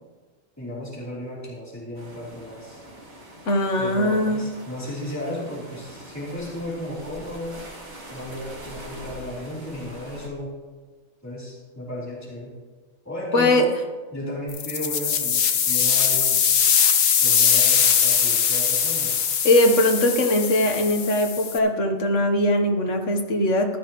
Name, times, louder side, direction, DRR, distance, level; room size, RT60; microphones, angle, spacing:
voice 1, 0.6-2.8 3.8-7.6 8.1-10.5 11.2-12.5 13.0-13.8 14.1-16.5 17.2-19.1, left 1 dB, 10° left, -7 dB, 3.3 m, -34 dB
sound 1, 1.9-10.3, right 1 dB, 60° right, 2.7 m, -43 dB
voice 2, 3.5-4.4 13.3-13.6 19.4-23.8, left 1 dB, 70° left, 4 dB, 1.5 m, -20 dB
sound 2, 14.5-21.6, left 7 dB, 90° left, 1.3 m, -21 dB
15.5 x 12.0 x 3.0 m, 1.3 s
omnidirectional pair, 1.3 m